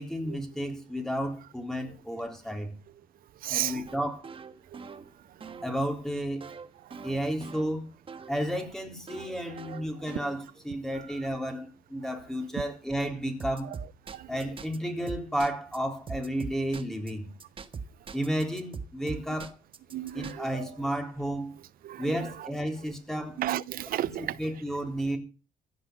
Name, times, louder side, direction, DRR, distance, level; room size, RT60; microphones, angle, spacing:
voice 1, 0.0-2.7 3.5-4.3 5.6-6.5 7.0-7.9 8.3-13.7 14.3-17.3 18.1-19.6 20.1-21.6 22.0-23.4 24.0-24.1 24.4-25.2, equal, 5° left, 4.1 m, -32 dB
voice 2, 3.4-3.8 4.7-5.0 5.4-5.5 6.8-7.1 9.7-9.8 13.6-13.8 14.1-14.3 19.9-20.6 21.8-22.5 23.4-24.4, right 13 dB, 60° right, 0.6 m, -34 dB
sound 1, 3.9-8.4 9.1-10.7 13.4-14.8 15.1-15.8 16.1-17.1 17.4-20.3, right 5 dB, 30° right, 1.5 m, -42 dB
16.0 x 8.2 x 7.0 m
cardioid pair, 110°, 17 cm